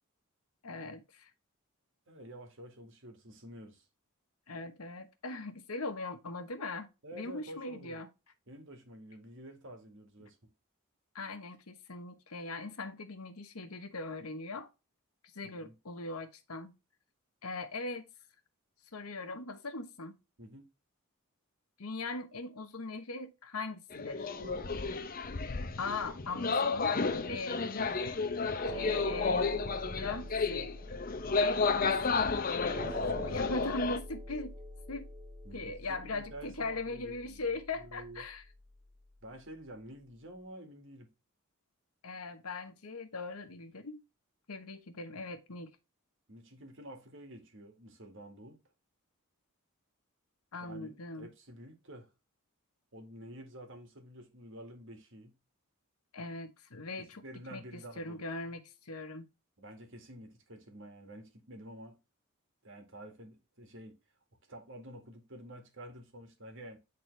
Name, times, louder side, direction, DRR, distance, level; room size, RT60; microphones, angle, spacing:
voice 1, 0.6-1.3 4.5-8.1 11.1-14.7 15.3-16.7 17.4-18.1 18.9-20.2 21.8-24.3 25.8-27.9 28.7-29.6 29.9-30.7 31.3-32.2 33.0-34.5 34.9-35.1 35.5-38.4 42.0-44.0 44.5-45.7 50.5-51.3 56.1-57.2 57.5-59.3, left 3 dB, 90° left, 1.2 m, -40 dB
voice 2, 2.1-3.9 7.0-8.0 8.5-10.4 15.4-15.8 20.4-20.6 24.4-24.7 32.8-33.1 35.4-38.2 39.2-41.1 46.3-48.6 50.6-52.1 52.9-55.3 57.0-58.5 59.6-62.0 62.6-64.0 64.5-66.8, right 1 dB, 60° right, 1.9 m, -49 dB
sound 1, 23.9-34.0, left 4 dB, 40° left, 0.7 m, -32 dB
sound 2, 28.6-39.0, equal, 10° right, 2.2 m, -45 dB
9.5 x 3.9 x 3.2 m
head